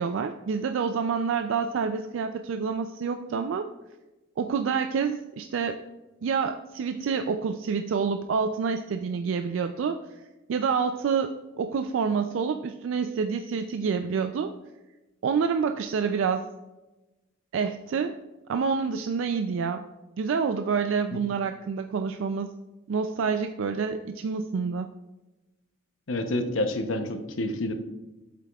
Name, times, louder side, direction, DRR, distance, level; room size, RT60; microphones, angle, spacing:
voice 1, 0.0-3.7 4.4-5.8 6.2-10.0 10.5-14.5 15.2-16.5 17.5-18.2 18.5-19.9 20.2-22.5 22.9-24.9, right 5 dB, 80° right, 7 dB, 0.3 m, -27 dB
voice 2, 26.1-27.7, left 1 dB, 85° left, 8 dB, 0.7 m, -28 dB
8.2 x 7.5 x 2.3 m, 1.1 s
head